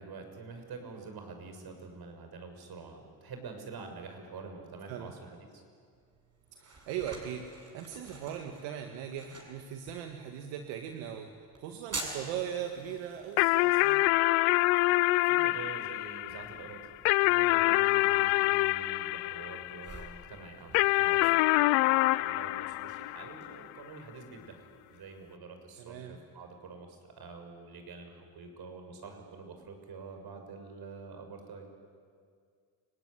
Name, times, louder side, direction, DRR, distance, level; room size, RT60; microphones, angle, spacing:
voice 1, 0.0-5.6 15.2-16.8 17.2-21.4 22.2-31.7, right 4 dB, 55° right, 5 dB, 6.3 m, -47 dB
sound 1, 5.9-23.5, right 2 dB, 35° right, 7.1 m, -49 dB
voice 2, 6.5-11.3 11.6-14.0 25.8-26.2, right 9 dB, 85° right, 4 dB, 1.9 m, -39 dB
sound 2, 13.4-20.1 20.7-23.6, left 20 dB, 90° left, 0.6 m, -26 dB
29.0 x 20.0 x 9.9 m, 2.1 s
supercardioid pair, 75°, 44 cm